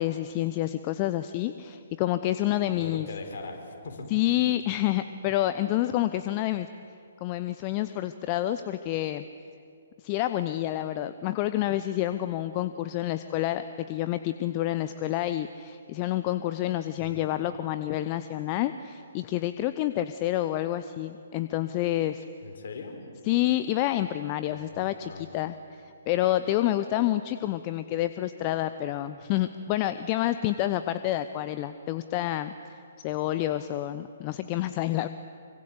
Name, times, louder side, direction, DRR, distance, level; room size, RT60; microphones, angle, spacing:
voice 1, 0.0-3.1 4.1-6.7 7.2-9.2 10.0-22.2 23.3-25.5 25.8-35.1, left 14 dB, 30° left, 11 dB, 0.7 m, -28 dB
voice 2, 2.8-4.1 17.0-17.2 22.4-23.0 24.5-25.3, left 3 dB, 55° left, 3 dB, 4.5 m, -40 dB
25.5 x 24.5 x 8.3 m, 2.5 s
figure-of-eight pair, 130°, 0 cm